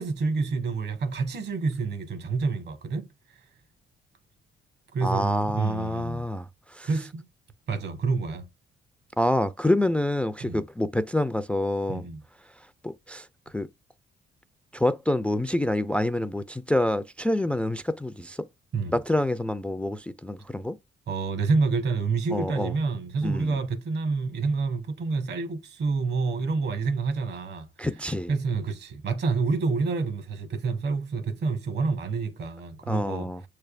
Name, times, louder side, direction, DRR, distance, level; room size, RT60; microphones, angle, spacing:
voice 1, 0.0-3.1 4.9-6.2 6.8-7.2 7.7-8.4 10.4-10.6 11.9-12.2 18.7-19.0 21.1-27.7 28.3-33.3, right 4 dB, 60° right, 1.1 m, -28 dB
voice 2, 5.0-6.9 9.2-12.0 12.8-13.3 13.5-13.7 14.7-18.5 18.9-20.8 22.3-22.7 23.2-23.6 27.8-28.3 32.9-33.4, left 1 dB, 5° left, 0.3 m, -27 dB
6.4 x 3.3 x 2.3 m
cardioid pair, 90°, 20 cm